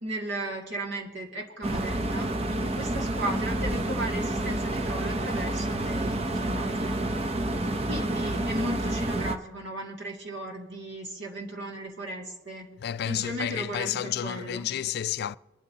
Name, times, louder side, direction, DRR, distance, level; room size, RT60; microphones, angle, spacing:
voice 1, 0.0-6.9 7.8-12.8 13.1-14.7, right 1 dB, 60° right, 2.2 m, -36 dB
sound 1, 1.6-9.4, right 1 dB, 30° right, 0.6 m, -29 dB
voice 2, 12.8-15.4, left 10 dB, 50° left, 0.3 m, -31 dB
24.5 x 12.0 x 2.8 m
head